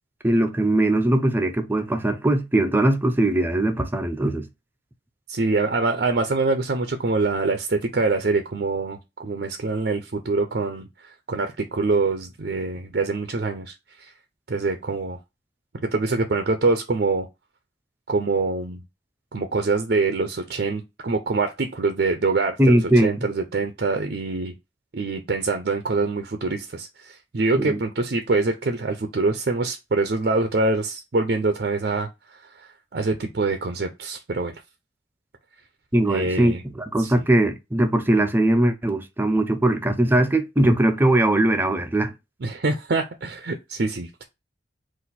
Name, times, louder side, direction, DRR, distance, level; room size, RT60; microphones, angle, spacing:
voice 1, 0.2-4.5 22.6-23.3 27.5-27.8 35.9-42.1, right 1 dB, 10° right, 0.6 m, -20 dB
voice 2, 5.3-10.9 11.3-13.7 14.0-14.1 14.5-15.2 15.8-17.3 18.1-18.8 19.3-24.5 24.9-32.1 32.6-32.7 32.9-34.5 36.1-36.6 37.0-37.2 42.4-44.2, right 3 dB, 60° right, 0.6 m, -24 dB
4.1 x 2.5 x 4.1 m
head